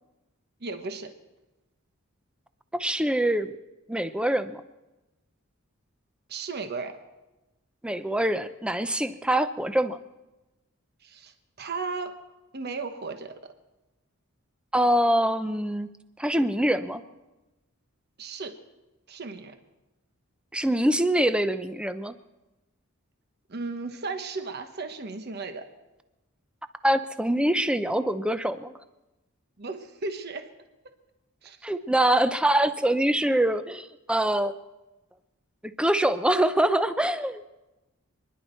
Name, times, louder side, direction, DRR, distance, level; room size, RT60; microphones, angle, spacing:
voice 1, 0.6-1.1 6.3-7.0 11.0-12.1 12.5-13.3 18.2-18.6 19.1-19.6 23.5-25.6 29.6-30.5 31.4-31.6, right 4 dB, 50° right, 7 dB, 1.1 m, -35 dB
voice 2, 2.7-3.5 3.9-4.6 7.8-10.0 14.7-15.9 16.2-17.0 20.5-22.1 26.8-28.7 31.6-34.5 35.6-37.4, right 1 dB, 5° right, 11 dB, 0.6 m, -24 dB
27.5 x 11.0 x 4.5 m, 1.1 s
head